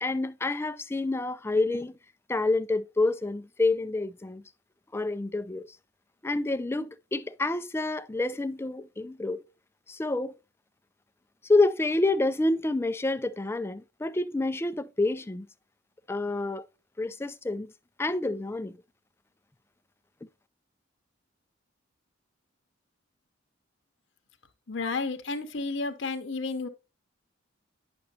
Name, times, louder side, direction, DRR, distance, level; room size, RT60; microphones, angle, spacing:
voice 1, 0.0-1.9 2.3-4.4 4.9-5.7 6.2-9.4 9.9-10.3 11.5-15.5 16.1-16.6 17.0-17.7 18.0-18.7, left 2 dB, 15° left, 0.4 m, -28 dB
voice 2, 24.7-26.7, left 3 dB, 65° left, 0.8 m, -31 dB
9.9 x 6.1 x 2.8 m
head